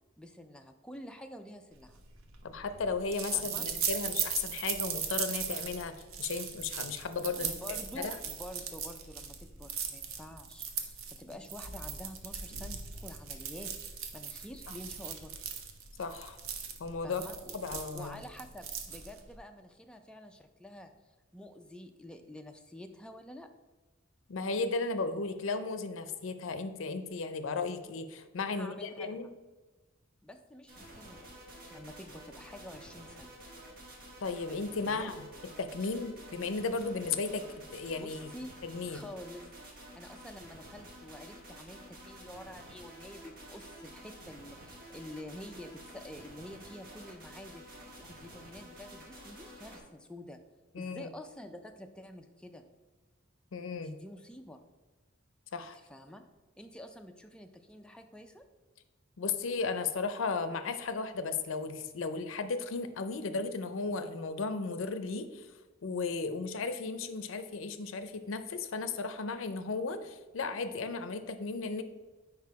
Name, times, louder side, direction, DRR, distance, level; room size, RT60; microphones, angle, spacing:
voice 1, 0.2-2.0 3.3-3.6 7.4-13.7 14.1-15.3 17.0-20.9 21.3-23.5 28.5-29.3 30.2-31.3 31.7-33.4 34.9-35.2 37.9-38.5 38.9-39.5 40.0-47.6 48.0-50.4 50.8-52.7 53.8-54.6 55.7-56.3 56.6-58.5, left 1 dB, 5° left, 5 dB, 0.4 m, -48 dB
sound 1, 1.9-19.4, right 7 dB, 90° right, 0.7 m, -38 dB
voice 2, 2.4-5.9 6.2-7.6 8.0-8.2 16.0-16.4 16.8-17.2 17.5-18.2 24.3-29.3 34.2-35.3 35.6-37.4 37.7-38.2 38.6-39.0 50.7-51.1 53.5-53.9 55.5-55.8 59.2-65.5 65.8-71.8, left 4 dB, 75° left, 10 dB, 0.5 m, -35 dB
sound 2, 30.7-49.8, right 1 dB, 50° right, 1.3 m, -50 dB
4.9 x 4.8 x 4.6 m, 1.2 s
head